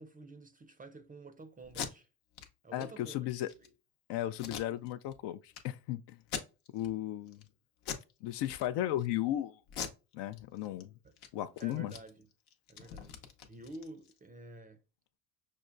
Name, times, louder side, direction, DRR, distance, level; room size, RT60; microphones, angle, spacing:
voice 1, 0.0-2.1 2.6-3.7 11.0-11.1 11.6-12.3 12.7-14.8, right 2 dB, 20° right, 0.5 m, -50 dB
Packing tape duct tape, 1.6-1.9 2.3-2.5 2.8-2.9 3.3-3.7 4.4-5.2 5.5-5.6 6.2-6.9 7.3-7.5 7.8-8.1 8.4-9.1 9.7-10.8 11.1-11.3 11.6-14.2, left 7 dB, 75° left, 0.9 m, -42 dB
voice 2, 2.7-3.5 4.1-6.2 6.7-7.4 8.2-9.6 10.1-10.9 11.3-11.9, left 13 dB, 60° left, 0.5 m, -35 dB
5.8 x 2.2 x 2.5 m
supercardioid pair, 75°, 49 cm